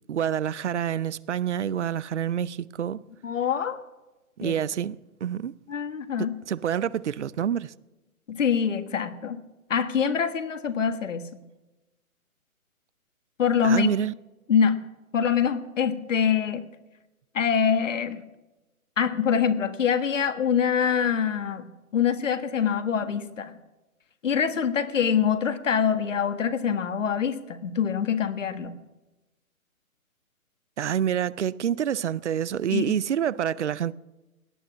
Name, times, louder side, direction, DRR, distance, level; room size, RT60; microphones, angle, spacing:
voice 1, 0.1-3.0 4.4-5.5 6.2-7.7 13.6-14.1 30.8-33.9, right 9 dB, 55° right, 0.6 m, -27 dB
voice 2, 3.2-3.8 4.4-4.5 5.7-6.3 8.3-9.4 9.7-11.4 13.4-13.9 14.5-14.7 15.1-16.6 17.3-18.2 19.0-23.5 24.2-28.7 32.7-32.9, left 7 dB, 60° left, 1.6 m, -25 dB
18.0 x 10.5 x 6.1 m
figure-of-eight pair, 145°, 43 cm